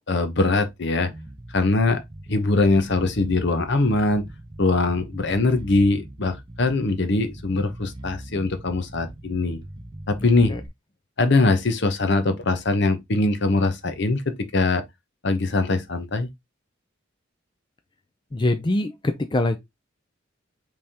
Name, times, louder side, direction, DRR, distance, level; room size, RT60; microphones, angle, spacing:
voice 1, 0.1-1.1 1.5-2.0 2.3-4.2 4.6-9.6 10.1-10.5 11.2-14.8 15.2-16.3, left 2 dB, 60° left, 0.8 m, -22 dB
Bass guitar, 1.1-10.7, right 1 dB, 25° right, 0.6 m, -40 dB
voice 2, 10.2-10.6 18.3-19.6, left 2 dB, 25° left, 0.4 m, -24 dB
5.5 x 3.4 x 2.8 m
head